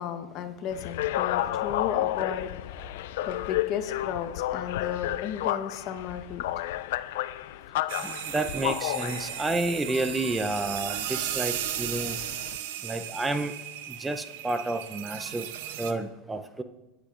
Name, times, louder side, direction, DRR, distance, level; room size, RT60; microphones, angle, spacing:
voice 1, 0.0-2.9 3.2-6.7, left 8 dB, 50° left, 8 dB, 1.1 m, -34 dB
sound 1, 0.7-12.6, left 14 dB, 75° left, 0.3 m, -32 dB
sound 2, 7.9-15.9, right 11 dB, 75° right, 0.8 m, -35 dB
voice 2, 8.0-12.2 12.8-13.5 14.0-15.5 15.8-16.6, right 2 dB, 10° right, 8 dB, 0.6 m, -30 dB
19.0 x 8.3 x 2.5 m, 1.0 s
hypercardioid pair, 100°, 0 cm